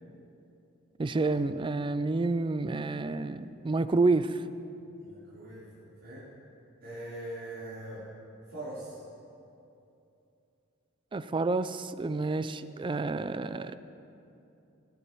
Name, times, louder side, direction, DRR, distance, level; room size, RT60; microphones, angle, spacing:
voice 1, 1.0-4.4 11.1-13.8, right 3 dB, 25° right, 13 dB, 0.4 m, -29 dB
voice 2, 5.0-6.2 6.8-8.1 8.5-9.0, right 1 dB, 70° right, -13 dB, 4.1 m, -42 dB
21.0 x 15.0 x 3.1 m, 2.8 s
head